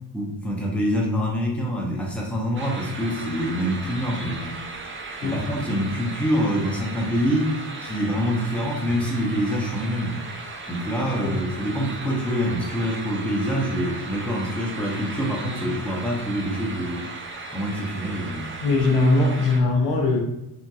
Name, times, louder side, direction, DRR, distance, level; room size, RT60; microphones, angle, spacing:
voice 1, 0.1-4.5 5.2-7.5 7.8-10.2 10.7-17.0 17.5-18.4, equal, 5° left, -2 dB, 0.8 m, -25 dB
sound 1, 2.6-19.6, right 3 dB, 30° right, 0.4 m, -37 dB
voice 2, 18.6-20.2, left 2 dB, 75° left, 0 dB, 0.8 m, -20 dB
2.9 x 2.6 x 2.3 m, 0.89 s
cardioid pair, 70°, 44 cm